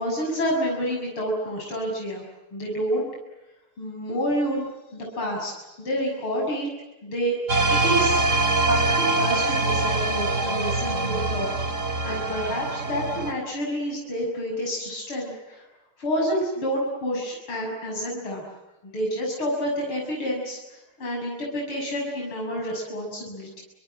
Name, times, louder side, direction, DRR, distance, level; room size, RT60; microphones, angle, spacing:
voice 1, 0.0-2.2 2.5-3.1 3.8-6.7 7.0-7.4 7.7-8.3 8.7-11.5 12.0-15.7 16.0-18.5 18.8-20.6 21.0-23.6, equal, 80° left, -1 dB, 7.5 m, -28 dB
sound 1, 7.5-13.3, right 2 dB, 35° right, 3.1 m, -24 dB
29.0 x 24.5 x 7.7 m, 1.0 s
omnidirectional pair, 2.3 m